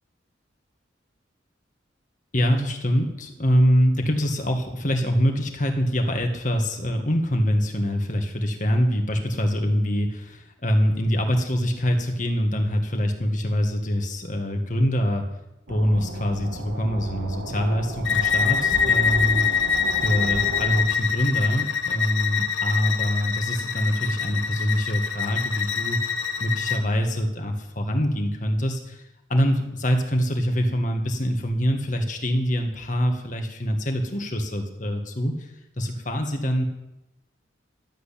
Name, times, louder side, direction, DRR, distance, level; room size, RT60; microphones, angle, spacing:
voice 1, 2.3-15.2 15.7-19.5 20.0-26.1 26.4-35.5 35.8-36.6, equal, 45° left, 4 dB, 1.8 m, -24 dB
sound 1, 15.7-20.8, right 2 dB, 85° right, 1.3 m, -34 dB
Bowed string instrument, 18.0-26.8, left 7 dB, 85° left, 0.9 m, -25 dB
12.5 x 8.0 x 8.5 m, 0.93 s
head